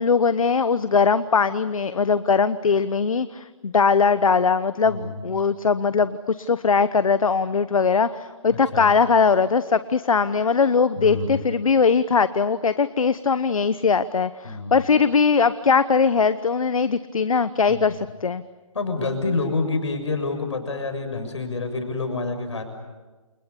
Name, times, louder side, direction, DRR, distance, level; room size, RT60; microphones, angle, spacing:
voice 1, 0.0-18.4, left 5 dB, 75° left, 14 dB, 1.0 m, -20 dB
voice 2, 4.8-5.2 8.5-8.9 11.0-11.4 14.4-14.8 17.7-17.9 18.7-22.6, left 3 dB, 55° left, 6 dB, 6.7 m, -28 dB
29.0 x 28.5 x 6.9 m, 1.2 s
hypercardioid pair, 175°, 18 cm